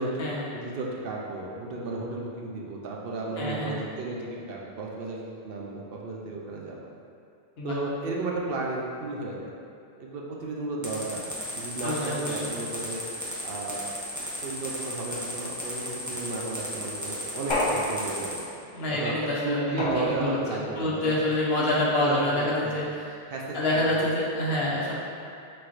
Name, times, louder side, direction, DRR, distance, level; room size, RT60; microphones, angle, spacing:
voice 1, 0.5-6.9 7.6-9.5 10.0-11.3 11.5-13.0 13.4-13.8 14.4-18.4 18.9-19.2 19.4-21.2 21.6-22.8 23.3-24.0 24.5-24.7, right 2 dB, 65° right, -2 dB, 0.7 m, -34 dB
voice 2, 3.4-3.8 7.6-7.8 11.8-12.5 18.7-23.2 23.5-24.9, left 1 dB, 70° left, -6 dB, 1.1 m, -27 dB
sound 1, 10.8-18.4, equal, 20° right, 0.8 m, -35 dB
sound 2, 17.5-18.5 19.8-20.6, left 1 dB, 40° left, 0.4 m, -29 dB
4.3 x 4.2 x 2.5 m, 2.6 s
omnidirectional pair, 1.1 m